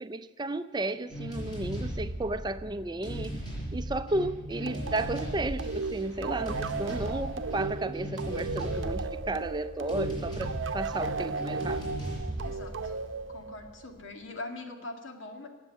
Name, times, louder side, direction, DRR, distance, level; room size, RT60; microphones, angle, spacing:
voice 1, 0.0-3.4 3.7-11.8, right 2 dB, 20° right, 0.4 m, -33 dB
sound 1, 1.1-13.8, right 1 dB, 20° left, 5.1 m, -37 dB
sound 2, 4.7-13.9, right 4 dB, 80° right, 0.7 m, -36 dB
voice 2, 12.4-13.0 13.3-15.5, left 2 dB, 90° left, 1.9 m, -42 dB
18.5 x 7.5 x 9.7 m
head